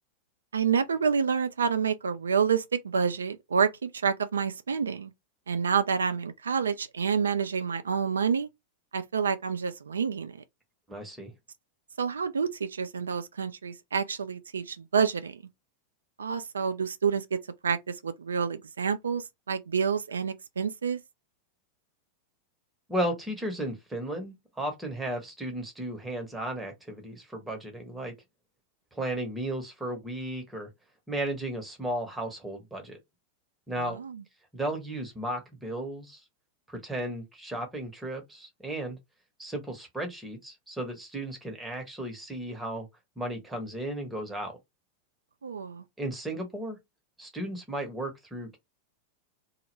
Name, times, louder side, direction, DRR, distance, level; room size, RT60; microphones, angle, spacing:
voice 1, 0.5-5.1 5.5-8.5 8.9-10.4 12.0-15.4 16.2-21.0 33.8-34.2 45.4-45.8, right 6 dB, 70° right, 0.3 m, -28 dB
voice 2, 10.9-11.3 22.9-28.1 28.9-30.7 31.1-33.0 33.7-34.0 34.5-36.2 36.7-39.0 39.4-42.9 43.2-44.6 46.0-46.8 47.2-48.6, right 1 dB, 10° right, 0.8 m, -34 dB
2.1 x 2.0 x 3.0 m
figure-of-eight pair, 90°, 0 cm